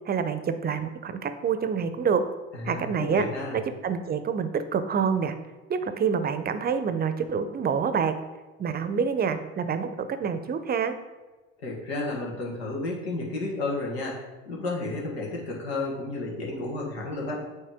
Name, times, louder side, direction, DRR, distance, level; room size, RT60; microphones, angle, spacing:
voice 1, 0.1-2.2 2.6-3.3 3.5-5.4 5.7-8.2 8.6-10.9, right 6 dB, 30° right, 10 dB, 0.6 m, -27 dB
voice 2, 2.5-3.6 11.6-14.2 14.4-17.4, left 2 dB, 85° left, -2 dB, 1.6 m, -32 dB
8.5 x 3.2 x 3.5 m, 1.2 s
hypercardioid pair, 65°, 30 cm